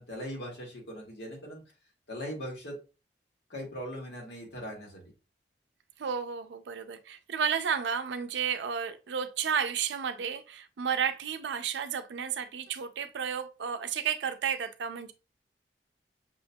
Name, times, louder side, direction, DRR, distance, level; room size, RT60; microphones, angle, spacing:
voice 1, 0.0-1.6 2.1-2.8 3.5-5.1, equal, 75° left, 1.7 m, -40 dB
voice 2, 6.0-15.1, right 7 dB, 85° right, 0.4 m, -32 dB
6.1 x 2.7 x 2.2 m
head